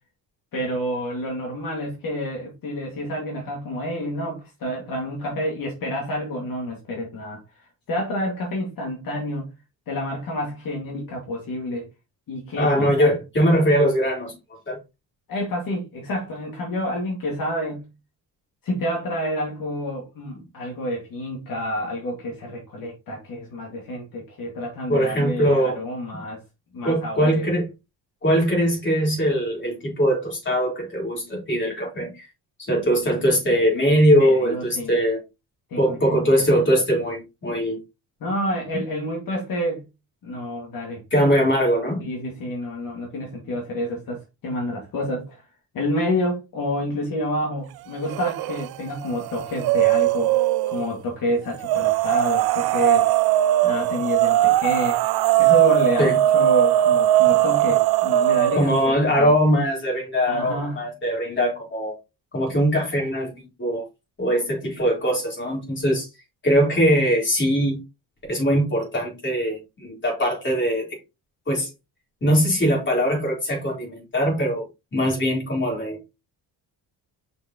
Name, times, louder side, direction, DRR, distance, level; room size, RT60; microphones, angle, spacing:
voice 1, 0.5-7.4 7.9-9.5 9.9-11.9 12.3-13.2 15.3-17.9 18.6-26.4 26.7-27.5 34.2-34.9 35.7-36.2 36.5-36.6 38.2-39.9 40.2-41.0 42.0-45.4 45.7-50.3 50.7-53.1 53.6-55.0 55.4-59.3 60.3-60.8, left 1 dB, 55° left, 2.3 m, -28 dB
voice 2, 12.6-14.3 14.7-14.8 24.9-25.8 26.8-27.7 28.2-32.3 32.7-35.2 35.8-37.8 41.1-42.0 56.0-56.2 58.5-61.9 62.3-63.8 64.2-66.1 66.4-67.8 68.3-70.9 71.5-71.7 72.2-74.6 74.9-76.0, equal, 30° left, 4.1 m, -21 dB
sound 1, 48.1-48.7 49.0-50.8 51.6-58.8, right 14 dB, 65° right, 0.5 m, -20 dB
6.1 x 5.4 x 3.0 m
cardioid pair, 145°, 40 cm